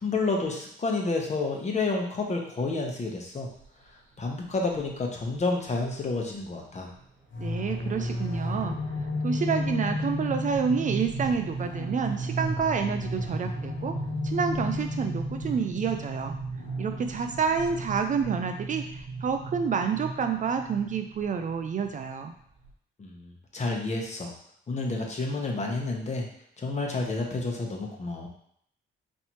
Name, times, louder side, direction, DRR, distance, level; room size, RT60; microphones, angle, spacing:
voice 1, 0.0-3.5 4.2-6.9 23.0-24.3 24.7-26.3 26.6-28.3, left 3 dB, 35° left, 0 dB, 1.0 m, -30 dB
sound 1, 3.6-3.9 4.7-4.9 5.2-5.4 5.6-6.0 6.3-22.7, right 4 dB, 85° right, 1.2 m, -37 dB
sound 2, 7.3-20.1, left 2 dB, 70° left, 1.2 m, -34 dB
voice 2, 7.4-8.8 9.2-14.0 14.2-16.3 16.8-22.3, right 6 dB, 40° right, 6 dB, 0.4 m, -28 dB
4.2 x 3.2 x 3.0 m, 0.67 s
cardioid pair, 90°, 20 cm